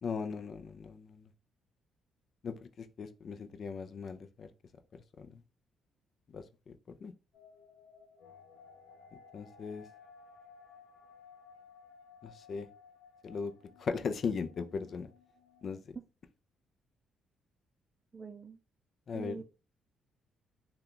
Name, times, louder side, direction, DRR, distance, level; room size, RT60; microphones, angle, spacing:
voice 1, 0.0-1.3 2.4-4.5 5.2-5.4 6.3-7.1 9.3-9.9 12.2-12.7 13.2-13.5 13.8-15.1 15.6-16.0 19.1-19.4, left 5 dB, 50° left, 9 dB, 0.4 m, -38 dB
sound 1, 7.3-15.8, left 6 dB, 85° left, 0.7 m, -57 dB
voice 2, 18.1-18.6 19.1-19.4, right 5 dB, 30° right, 4 dB, 0.4 m, -44 dB
2.8 x 2.3 x 3.7 m, 0.32 s
cardioid pair, 90°, 0 cm